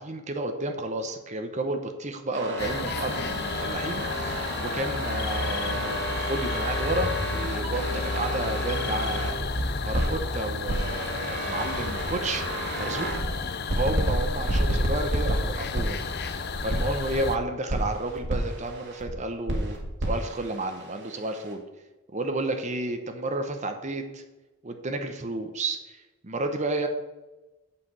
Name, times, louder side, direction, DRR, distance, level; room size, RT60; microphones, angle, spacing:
voice 1, 0.0-9.4 9.8-12.4 12.8-13.1 13.8-16.0 16.6-21.6 22.1-24.2 24.6-26.9, right 2 dB, 35° right, 6 dB, 0.9 m, -31 dB
sound 1, 2.3-10.2 10.6-13.3 13.7-17.3 17.7-19.1 19.5-21.5, right 1 dB, 55° right, 2.0 m, -31 dB
sound 2, 2.6-17.4, left 4 dB, 50° left, 0.7 m, -32 dB
8.5 x 5.1 x 7.5 m, 1.1 s
head